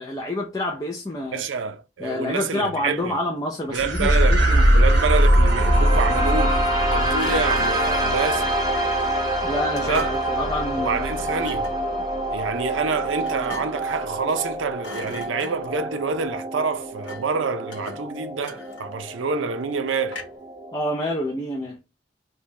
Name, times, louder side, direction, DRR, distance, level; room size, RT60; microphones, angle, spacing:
voice 1, 0.0-1.4 2.0-4.7 9.4-11.1 20.7-21.8, left 1 dB, 20° left, 0.5 m, -28 dB
voice 2, 1.3-3.2 3.7-4.5 4.7-6.6 6.9-8.5 9.8-10.2 10.8-11.7 12.3-20.2, right 5 dB, 85° right, 0.5 m, -27 dB
Thump thud, 3.6-4.4 7.2-8.1 9.7-10.4 11.3-11.8 13.2-13.9 14.3-14.5 14.8-15.8 17.0-17.4 17.7-19.1 20.1-20.5, left 3 dB, 75° left, 1.1 m, -40 dB
sound 1, 3.7-12.4, equal, 65° right, 1.3 m, -21 dB
sound 2, 4.7-20.7, right 1 dB, 20° right, 0.9 m, -27 dB
3.3 x 2.9 x 3.1 m
head